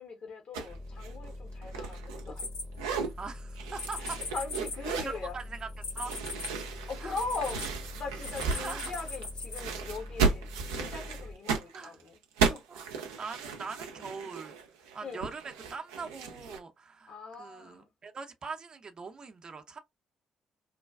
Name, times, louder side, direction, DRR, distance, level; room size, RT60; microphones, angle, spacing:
voice 1, 0.0-2.5 4.0-5.4 6.9-12.1 12.5-12.6 15.0-15.3 17.1-17.9, left 3 dB, 55° left, 1.1 m, -40 dB
sound 1, 0.5-0.7 1.0-2.5 2.7-3.1 3.6-5.2 6.0-9.3 9.5-16.6, right 5 dB, 80° right, 0.5 m, -34 dB
sound 2, 0.7-11.4, left 1 dB, 30° left, 0.9 m, -44 dB
sound 3, 2.4-3.2 3.8-7.7 8.2-9.6, left 3 dB, 70° left, 1.7 m, -39 dB
voice 2, 3.2-4.2 5.0-5.7 5.9-6.2 7.0-7.2 8.4-8.9 11.7-12.0 12.7-12.8 13.2-14.5 14.9-19.8, right 4 dB, 40° right, 0.6 m, -42 dB
3.2 x 2.2 x 2.3 m
hypercardioid pair, 45°, 2 cm